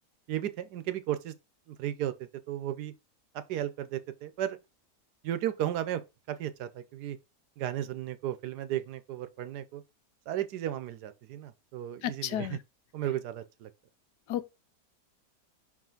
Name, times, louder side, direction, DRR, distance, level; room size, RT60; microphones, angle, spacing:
voice 1, 0.3-1.3 1.7-2.9 3.5-4.6 5.2-6.0 6.3-7.2 7.6-9.8 10.3-12.6 12.9-13.7, right 12 dB, 80° right, 1.2 m, -34 dB
voice 2, 12.0-12.6 14.3-14.5, left 12 dB, 75° left, 1.1 m, -32 dB
5.5 x 4.9 x 3.8 m
omnidirectional pair, 1.8 m